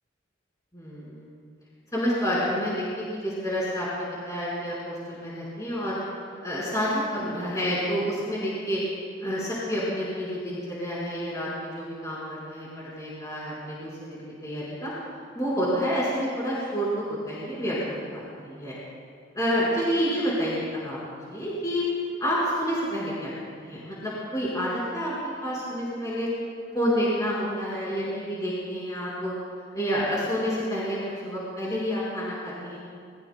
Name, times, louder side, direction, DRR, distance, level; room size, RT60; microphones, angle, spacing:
voice 1, 0.7-1.3 1.9-6.0 6.4-8.8 9.2-14.9 15.3-18.7 19.3-21.8 22.2-23.3 23.6-26.3 26.7-29.3 29.7-32.8, equal, 20° left, -8 dB, 5.0 m, -29 dB
29.0 x 21.5 x 2.3 m, 2.2 s
head